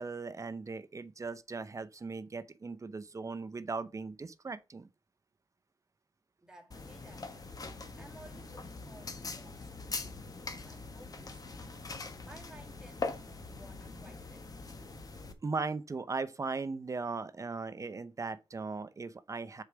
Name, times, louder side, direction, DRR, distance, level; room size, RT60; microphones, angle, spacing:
voice 1, 0.0-4.9 15.4-19.6, right 4 dB, 35° right, 0.6 m, -38 dB
voice 2, 6.4-11.5 12.2-14.5, right 2 dB, 10° right, 2.3 m, -57 dB
sound 1, 6.7-15.3, left 3 dB, 45° left, 1.2 m, -42 dB
6.5 x 4.6 x 4.9 m
wide cardioid pair, 115°, 9 cm